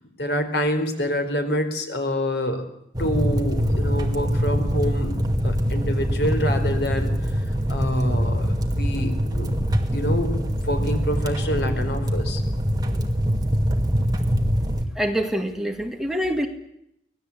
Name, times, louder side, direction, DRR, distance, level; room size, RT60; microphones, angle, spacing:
voice 1, 0.2-2.6 3.0-5.1 5.4-7.1 7.7-9.5 9.9-12.4, equal, 65° left, 6 dB, 4.2 m, -26 dB
sound 1, 2.9-14.8, equal, 20° right, 2.2 m, -23 dB
voice 2, 15.0-16.5, equal, 5° right, 3 dB, 2.2 m, -25 dB
25.0 x 19.0 x 8.5 m, 0.79 s
head